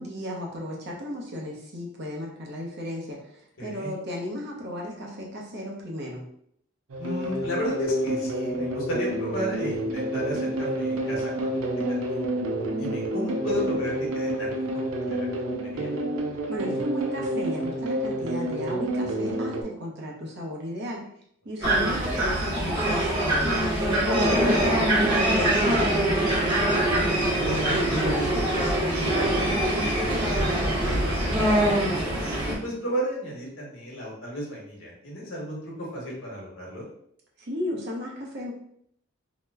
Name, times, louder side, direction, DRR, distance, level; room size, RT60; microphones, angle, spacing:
voice 1, 0.0-6.3 16.5-21.0 21.4-26.7 37.4-38.5, equal, 55° right, -2 dB, 0.8 m, -34 dB
voice 2, 3.6-3.9 7.0-12.2 12.8-15.3 15.6-15.9 21.6-22.0 27.1-30.1 30.4-31.4 31.6-32.1 32.4-36.9, equal, 70° left, -3 dB, 1.1 m, -34 dB
sound 1, 6.9-19.6, right 1 dB, 90° right, 0.5 m, -29 dB
sound 2, 21.6-32.5, right 1 dB, 20° right, 1.1 m, -23 dB
2.9 x 2.1 x 3.5 m, 0.69 s
head